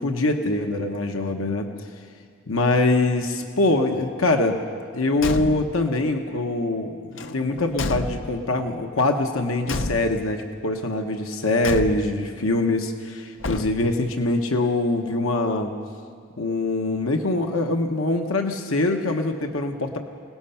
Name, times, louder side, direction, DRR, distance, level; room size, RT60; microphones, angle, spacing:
voice 1, 0.0-1.7 2.5-4.6 4.9-15.7 16.4-20.0, left 2 dB, 85° left, 4 dB, 1.1 m, -23 dB
Car / Truck / Slam, 5.1-5.9 7.1-8.6 9.6-10.4 11.6-12.3 13.4-14.1, left 2 dB, 70° left, 0.8 m, -31 dB
28.0 x 18.5 x 5.8 m, 2.1 s
head